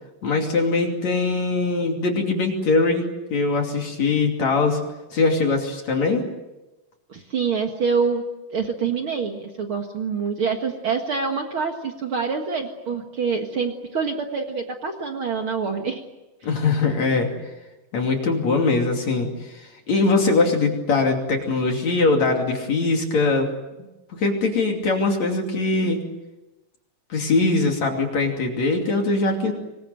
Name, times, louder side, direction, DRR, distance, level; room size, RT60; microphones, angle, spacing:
voice 1, 0.2-4.8 5.1-6.2 16.4-17.3 17.9-23.5 24.1-26.0 27.1-29.5, left 3 dB, 45° left, 2 dB, 3.4 m, -22 dB
voice 2, 7.1-8.2 8.5-16.0, right 5 dB, 90° right, 4 dB, 1.1 m, -26 dB
26.0 x 22.5 x 7.9 m, 1.0 s
omnidirectional pair, 5.3 m